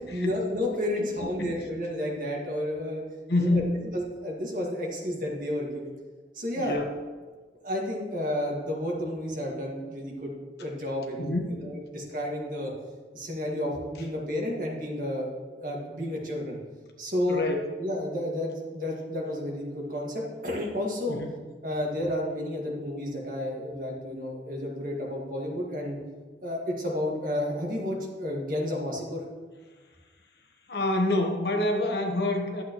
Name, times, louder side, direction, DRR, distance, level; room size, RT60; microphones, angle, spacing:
voice 1, 0.1-3.0 3.4-3.6 3.9-5.9 6.3-6.8 7.6-10.3 10.6-12.7 13.1-16.6 17.0-17.5 17.8-21.2 21.6-26.0 26.4-29.2, left 1 dB, 50° right, -2 dB, 1.8 m, -31 dB
voice 2, 1.0-1.5 3.3-3.8 6.6-6.9 11.2-11.6 17.3-17.6 21.1-21.3 30.7-32.6, left 2 dB, 70° left, 2 dB, 1.2 m, -27 dB
11.0 x 8.1 x 3.1 m, 1.4 s
head